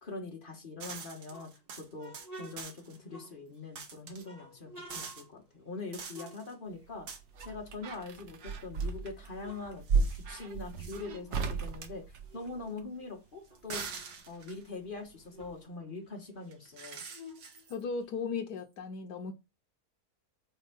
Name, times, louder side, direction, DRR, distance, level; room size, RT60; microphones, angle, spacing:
voice 1, 0.0-1.5 1.8-2.1 2.4-7.1 7.4-13.8 14.3-17.0, left 3 dB, 30° left, 1.7 m, -43 dB
sound 1, 0.8-3.0 3.8-4.3 4.9-5.2 5.9-6.5 7.1-7.2 7.9-8.0 9.9-10.2 10.8-11.0 13.5-14.7 16.5-17.8, right 5 dB, 75° right, 1.6 m, -44 dB
sound 2, 1.1-3.7 4.2-7.1 7.3-8.7 9.1-11.4 11.6-14.2 14.6-14.7 14.9-18.3, equal, 25° right, 1.6 m, -53 dB
sound 3, 6.8-12.9 14.3-15.1 15.4-15.5, right 4 dB, 55° right, 0.9 m, -35 dB
voice 2, 17.7-19.3, left 5 dB, 75° left, 1.3 m, -36 dB
4.6 x 4.1 x 5.2 m
omnidirectional pair, 1.7 m